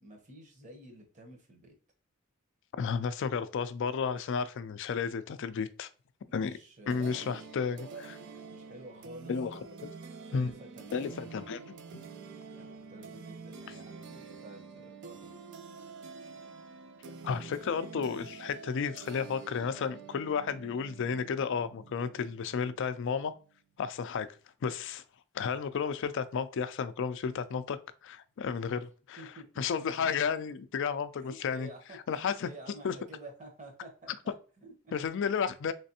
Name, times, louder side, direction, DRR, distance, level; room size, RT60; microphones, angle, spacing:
voice 1, 0.0-1.8 6.3-9.3 10.3-11.5 12.5-15.3 29.2-29.6 31.2-34.9, right 2 dB, 35° right, 0.9 m, -50 dB
voice 2, 2.8-5.9 6.3-6.6 6.9-7.8 9.3-9.9 10.3-10.5 10.9-11.6 11.9-12.0 17.2-23.3 23.8-24.3 24.6-25.0 25.3-29.2 29.6-31.7 32.1-32.5 32.8-32.9 34.9-35.7, left 6 dB, 60° left, 0.4 m, -32 dB
sound 1, 6.9-23.5, right 5 dB, 60° right, 0.5 m, -48 dB
3.3 x 3.2 x 2.8 m
head